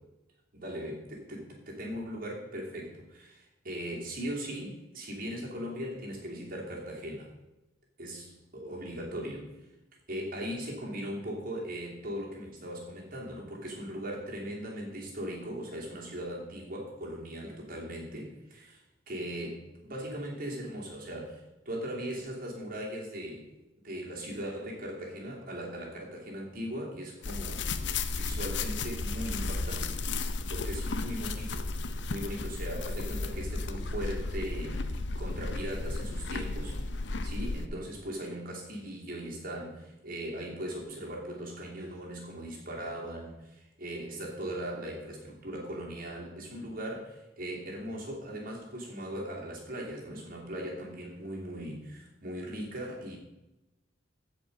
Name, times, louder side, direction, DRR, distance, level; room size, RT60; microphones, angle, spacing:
voice 1, 0.5-7.3 8.0-9.6 10.1-18.8 19.1-23.6 23.8-30.0 30.5-34.8 35.2-53.2, equal, 50° right, -2 dB, 2.9 m, -39 dB
sound 1, 27.2-37.7, left 3 dB, 70° left, 0.7 m, -34 dB
15.0 x 5.2 x 5.2 m, 0.97 s
head